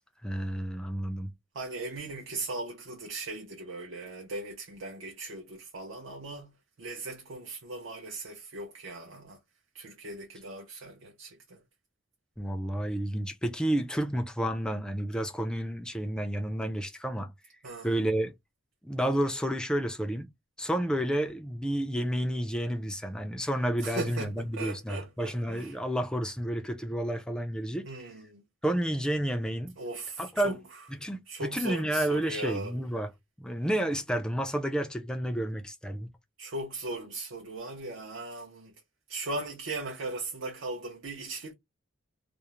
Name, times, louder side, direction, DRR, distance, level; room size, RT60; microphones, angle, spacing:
voice 1, 0.2-1.3 12.4-17.3 17.8-18.3 18.8-20.3 20.6-27.9 28.6-29.8 30.2-30.6 31.0-33.1 33.4-36.1, right 1 dB, 5° left, 0.3 m, -30 dB
voice 2, 1.5-6.5 6.8-9.4 9.7-11.6 17.6-18.0 23.8-25.8 27.9-28.4 29.8-30.6 31.3-32.7 36.4-38.7 39.1-41.5, right 2 dB, 65° right, 0.6 m, -38 dB
2.4 x 2.0 x 2.8 m
head